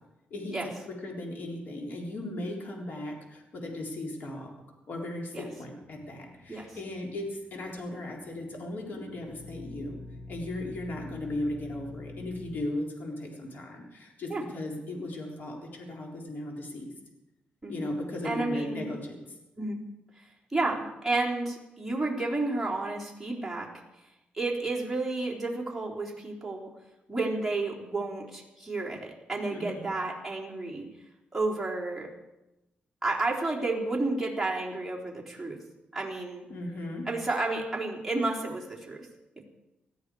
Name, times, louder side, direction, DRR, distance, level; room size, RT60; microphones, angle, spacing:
voice 1, 0.3-4.5 4.9-10.0 10.3-16.9 17.7-19.2 29.5-29.9 36.5-37.1, left 1 dB, 60° left, 0 dB, 3.7 m, -37 dB
sound 1, 5.8-12.7, left 2 dB, 35° left, 1.5 m, -47 dB
voice 2, 17.6-17.9 18.2-19.0 19.6-19.8 20.2-20.3 20.5-23.7 24.3-26.7 27.1-30.9 31.3-32.1 33.0-35.6 35.9-36.5 37.1-39.1, right 2 dB, 5° right, -4 dB, 3.9 m, -31 dB
19.5 x 13.5 x 4.8 m, 0.97 s
cardioid pair, 115°, 3 cm